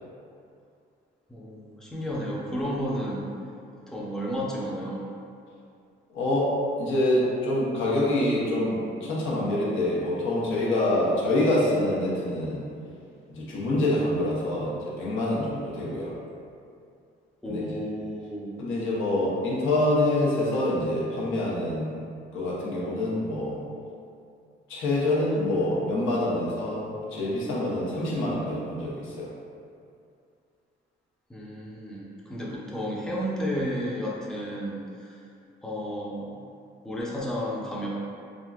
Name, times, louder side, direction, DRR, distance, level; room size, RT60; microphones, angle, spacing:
voice 1, 1.3-3.3 3.9-5.0 17.4-18.6 31.3-35.2 35.6-36.3 36.8-37.9, equal, 5° left, -5 dB, 0.6 m, -32 dB
voice 2, 6.1-12.6 13.3-16.1 17.4-17.7 18.6-21.9 22.3-23.6 24.7-29.3, left 1 dB, 85° left, -6 dB, 0.8 m, -26 dB
3.5 x 2.6 x 2.3 m, 2.5 s
cardioid pair, 90°, 20 cm